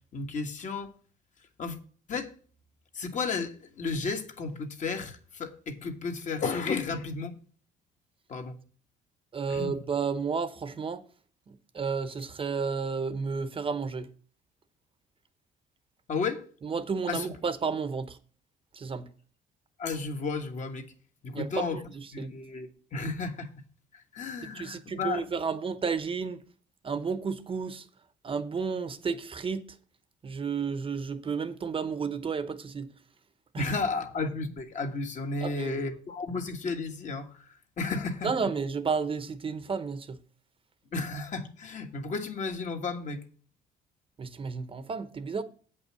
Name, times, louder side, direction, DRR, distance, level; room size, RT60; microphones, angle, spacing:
voice 1, 0.1-0.9 1.6-1.8 2.1-2.3 2.9-7.3 8.3-8.5 9.5-9.8 16.1-16.4 17.1-17.3 19.8-20.9 21.2-21.8 22.1-23.5 23.9-25.2 33.6-37.5 37.8-38.3 40.9-43.2, left 4 dB, 45° left, 1.6 m, -33 dB
voice 2, 9.3-11.0 11.5-14.1 16.6-18.2 18.7-19.1 21.3-22.3 24.5-26.4 26.8-27.8 28.2-29.7 30.2-32.9 33.5-33.7 35.4-35.8 38.2-40.2 44.2-45.4, right 5 dB, 30° right, 0.9 m, -32 dB
8.3 x 5.5 x 6.9 m
cardioid pair, 110°, 17 cm